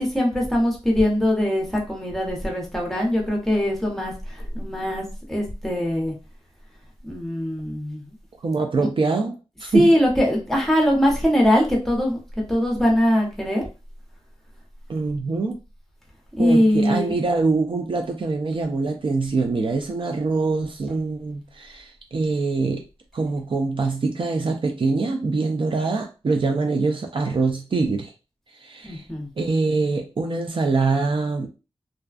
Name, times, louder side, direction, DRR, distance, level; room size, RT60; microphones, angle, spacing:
voice 1, 0.0-5.0 5.3-6.1 7.0-8.1 8.8-8.9 9.7-12.2 12.5-13.6 16.4-17.1 28.8-29.3, equal, 5° left, -2 dB, 0.8 m, -21 dB
voice 2, 8.4-9.9 14.9-15.6 16.4-22.8 23.1-28.1 28.5-29.1 29.4-31.5, right 3 dB, 50° right, 3 dB, 0.3 m, -24 dB
2.4 x 2.2 x 2.3 m, 0.31 s
wide cardioid pair, 85°, 11 cm